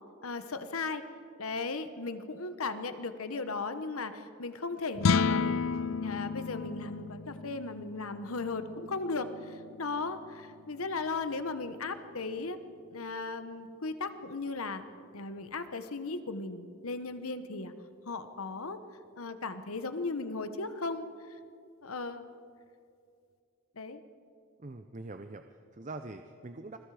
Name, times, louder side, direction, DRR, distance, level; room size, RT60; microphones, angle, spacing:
voice 1, 0.2-1.0 1.4-5.6 6.0-12.6 12.9-14.8 15.1-17.7 18.1-18.8 19.2-21.4 21.8-22.3 23.8-24.0, left 3 dB, 85° left, 10 dB, 1.2 m, -36 dB
sound 1, 4.9-11.3, left 5 dB, 70° left, 0.5 m, -33 dB
voice 2, 24.6-26.8, right 2 dB, 35° right, 8 dB, 0.6 m, -44 dB
28.5 x 21.5 x 5.0 m, 2.5 s
head